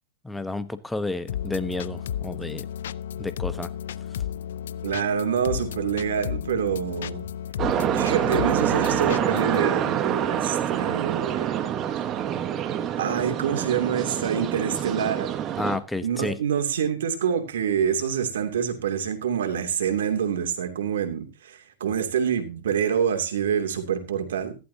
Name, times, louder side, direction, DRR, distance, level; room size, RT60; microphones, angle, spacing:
voice 1, 0.2-2.6 3.2-3.7 15.6-16.4, left 2 dB, 5° left, 0.9 m, -31 dB
sound 1, 1.3-9.6, left 10 dB, 70° left, 0.5 m, -33 dB
voice 2, 4.8-7.2 7.9-11.6 13.0-15.3 16.0-24.6, right 8 dB, 75° right, 2.7 m, -26 dB
sound 2, 7.6-15.8, right 10 dB, 30° right, 1.2 m, -26 dB
14.5 x 11.5 x 2.8 m
hypercardioid pair, 115°, 0 cm